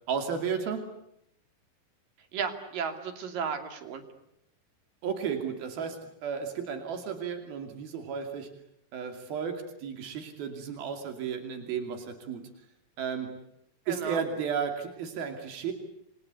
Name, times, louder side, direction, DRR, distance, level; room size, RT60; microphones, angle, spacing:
voice 1, 0.1-0.9 5.0-8.5 8.9-12.5 13.0-13.3 13.9-15.7, right 7 dB, 85° right, 5 dB, 4.6 m, -33 dB
voice 2, 2.3-4.0 13.9-14.2, right 6 dB, 70° right, 7 dB, 4.4 m, -34 dB
29.0 x 24.5 x 8.3 m, 0.77 s
omnidirectional pair, 4.2 m